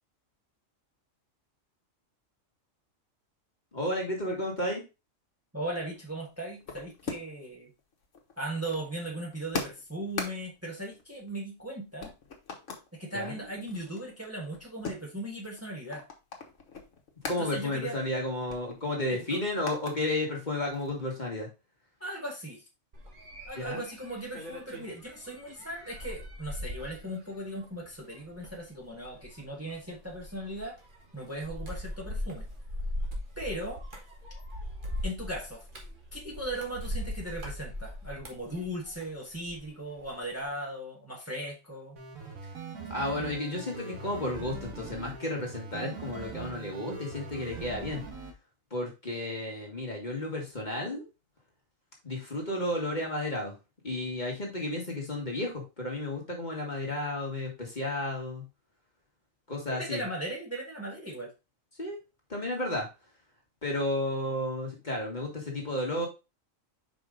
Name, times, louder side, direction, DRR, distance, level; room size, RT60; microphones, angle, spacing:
voice 1, 3.7-4.8 13.1-13.4 17.3-21.5 23.6-23.8 42.9-48.0 48.7-51.1 52.0-53.6 53.8-58.4 59.5-60.0 61.8-62.0 62.3-62.9 63.6-66.1, left 1 dB, 35° left, -1 dB, 1.7 m, -32 dB
voice 2, 5.5-7.7 8.4-12.1 12.9-16.0 17.3-18.0 19.1-19.4 22.0-22.6 23.5-30.8 31.1-32.4 33.4-33.8 35.0-35.7 36.1-42.0 59.8-61.3, right 1 dB, 10° right, -2 dB, 1.4 m, -38 dB
sound 1, 5.6-7.5 7.8-11.7 12.0-12.9 13.3-17.4 17.8-18.0 18.2-20.0 20.4-21.2, left 4 dB, 65° left, 1.6 m, -42 dB
sound 2, 22.9-39.7 40.0-40.4, left 1 dB, 40° right, 1.6 m, -40 dB
sound 3, 42.0-48.3, right 5 dB, 80° right, 1.8 m, -42 dB
5.3 x 4.9 x 3.8 m, 0.27 s
omnidirectional pair, 1.4 m